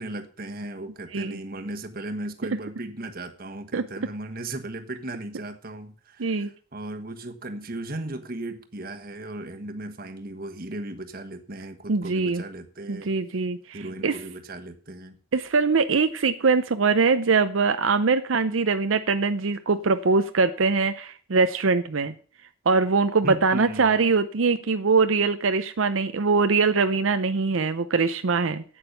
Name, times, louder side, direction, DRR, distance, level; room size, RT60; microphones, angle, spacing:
voice 1, 0.0-13.1 13.7-15.2 23.2-24.0, right 1 dB, 45° right, 6 dB, 1.3 m, -36 dB
voice 2, 6.2-6.5 11.9-12.4 12.9-14.2 15.3-22.1 22.7-28.6, right 4 dB, 90° right, 9 dB, 0.7 m, -22 dB
8.8 x 8.7 x 6.7 m, 0.43 s
head